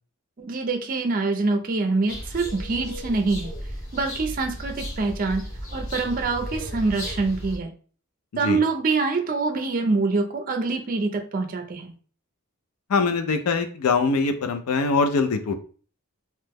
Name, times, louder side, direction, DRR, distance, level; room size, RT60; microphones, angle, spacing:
voice 1, 0.4-3.5 3.9-5.5 5.7-7.7 8.4-11.9, right 3 dB, 40° right, 4 dB, 0.4 m, -25 dB
sound 1, 2.1-7.6, equal, 65° left, 1.1 m, -35 dB
voice 2, 12.9-15.6, left 4 dB, 80° left, 8 dB, 0.4 m, -23 dB
2.9 x 2.1 x 3.4 m, 0.40 s
head